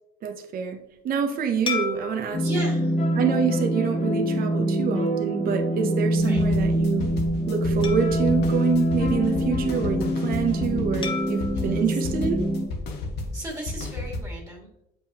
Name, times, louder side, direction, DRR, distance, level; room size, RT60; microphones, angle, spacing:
voice 1, 0.2-2.5 3.1-7.1 7.5-12.4, right 6 dB, 60° right, 5 dB, 0.9 m, -27 dB
sound 1, 1.7-4.3 4.9-5.1 7.8-9.6 11.0-13.3, left 4 dB, 30° left, 1.2 m, -37 dB
sound 2, 2.3-12.7, equal, 50° left, 1.6 m, -25 dB
voice 2, 2.4-2.9 6.3-6.4 11.6-11.7 13.3-14.7, right 1 dB, 20° right, -1 dB, 1.9 m, -34 dB
sound 3, 6.1-14.2, left 2 dB, 75° left, 1.3 m, -32 dB
7.6 x 5.2 x 2.9 m, 0.81 s
cardioid pair, 110°, 17 cm